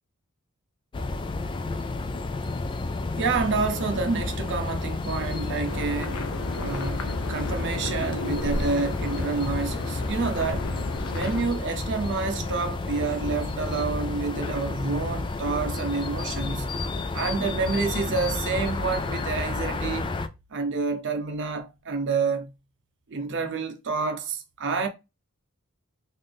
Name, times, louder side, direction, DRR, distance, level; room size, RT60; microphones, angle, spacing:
sound 1, 0.9-20.3, left 3 dB, 20° left, 0.3 m, -31 dB
voice 1, 3.2-6.2 6.6-10.7 11.1-16.7 17.1-20.1 20.5-22.5 23.1-24.9, right 4 dB, 55° right, 0.6 m, -28 dB
sound 2, 5.7-11.4, left 2 dB, 80° left, 0.7 m, -34 dB
3.9 x 2.6 x 3.3 m
head